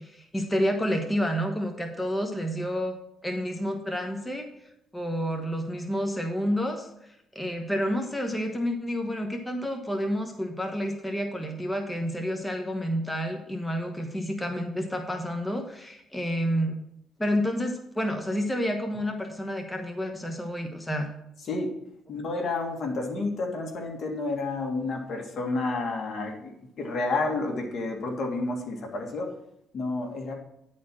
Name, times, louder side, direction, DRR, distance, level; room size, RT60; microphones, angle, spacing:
voice 1, 0.0-3.0 3.2-4.5 4.9-16.7 17.2-21.1, equal, 10° left, 4 dB, 1.1 m, -29 dB
voice 2, 22.1-26.5 26.8-29.3 29.7-30.3, left 3 dB, 60° left, 2 dB, 1.9 m, -30 dB
10.0 x 4.3 x 6.2 m, 0.79 s
cardioid pair, 90°, 0 cm